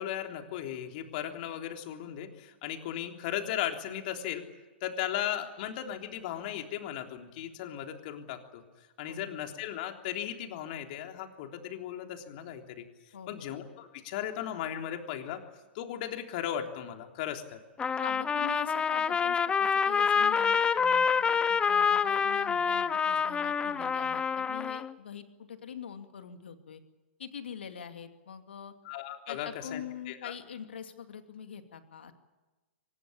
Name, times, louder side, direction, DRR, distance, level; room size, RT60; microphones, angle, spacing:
voice 1, 0.0-4.4 4.8-8.6 9.0-12.8 13.3-15.4 15.7-17.6 28.8-30.3, left 11 dB, 50° left, 4 dB, 3.4 m, -36 dB
voice 2, 9.1-9.4 13.1-13.5 18.0-26.8 27.2-28.7 29.3-32.1, left 8 dB, 70° left, 7 dB, 2.6 m, -44 dB
Trumpet, 17.8-24.9, left 6 dB, 15° left, 0.8 m, -27 dB
24.0 x 20.5 x 8.8 m, 1.2 s
hypercardioid pair, 110°, 6 cm